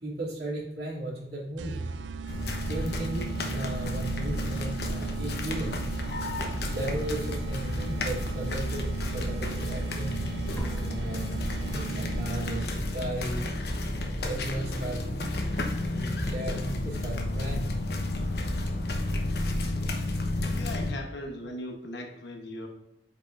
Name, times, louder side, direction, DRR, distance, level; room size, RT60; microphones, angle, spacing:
voice 1, 0.0-1.9 2.6-5.8 6.7-10.3 10.8-13.5 14.2-15.0 15.9-17.7, right 1 dB, 65° right, -4 dB, 2.4 m, -36 dB
sound 1, 1.6-13.0, right 7 dB, 90° right, 0.3 m, -38 dB
sound 2, 2.3-20.9, left 1 dB, 65° left, 1.0 m, -31 dB
sound 3, 10.6-12.2, equal, 15° left, 0.8 m, -41 dB
voice 2, 20.4-22.7, left 1 dB, 85° left, 3 dB, 1.1 m, -38 dB
8.2 x 4.8 x 2.5 m, 0.90 s
head